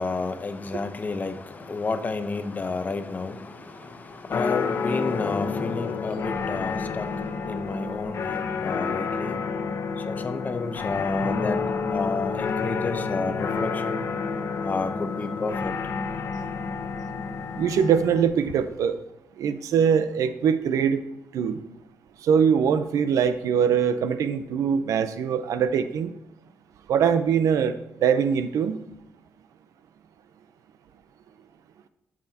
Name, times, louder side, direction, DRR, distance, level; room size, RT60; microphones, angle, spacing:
voice 1, 0.0-7.1 7.5-9.4 10.1-11.6 11.9-14.0 14.6-15.7, left 3 dB, 30° left, 0.8 m, -30 dB
sound 1, 4.3-18.2, left 5 dB, 60° left, 0.9 m, -29 dB
voice 2, 17.6-19.0 19.4-21.0 21.3-21.6 22.2-26.1 26.9-28.8, right 7 dB, 80° right, 0.7 m, -22 dB
12.5 x 7.6 x 2.8 m
cardioid pair, 120°, 6 cm